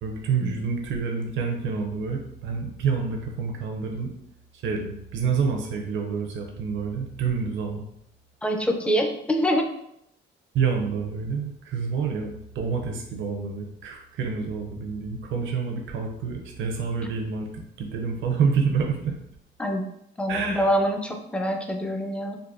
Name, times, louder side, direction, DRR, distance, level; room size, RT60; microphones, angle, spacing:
voice 1, 0.0-4.1 4.6-7.8 10.5-19.1 20.3-20.7, right 5 dB, 75° right, 2 dB, 0.6 m, -28 dB
voice 2, 8.4-9.7 19.6-19.8 20.2-22.4, equal, 5° left, 4 dB, 0.4 m, -25 dB
3.8 x 2.2 x 2.5 m, 0.75 s
cardioid pair, 90°, 20 cm